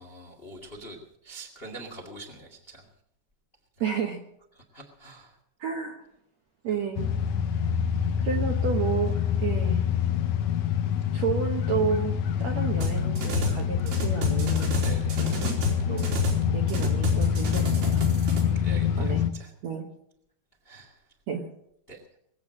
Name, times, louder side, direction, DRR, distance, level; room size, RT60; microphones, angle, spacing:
voice 1, 0.0-2.9 4.5-5.3 8.0-8.1 14.8-15.2 18.5-19.5 20.6-21.0 21.9-22.0, right 2 dB, 25° left, 2 dB, 1.2 m, -44 dB
voice 2, 3.8-4.2 5.6-6.0 6.6-7.1 8.2-9.1 9.4-9.9 11.1-14.9 15.2-15.5 15.9-16.1 16.5-18.0 19.0-19.2 19.6-19.9 21.3-21.5, right 6 dB, 60° right, 2 dB, 1.8 m, -31 dB
sound 1, 7.0-19.3, left 8 dB, 80° left, 1.8 m, -26 dB
sound 2, 12.8-13.6 13.9-16.4 16.7-18.4, left 1 dB, 75° right, 5.5 m, -30 dB
21.5 x 8.4 x 7.6 m, 0.74 s
omnidirectional pair, 4.7 m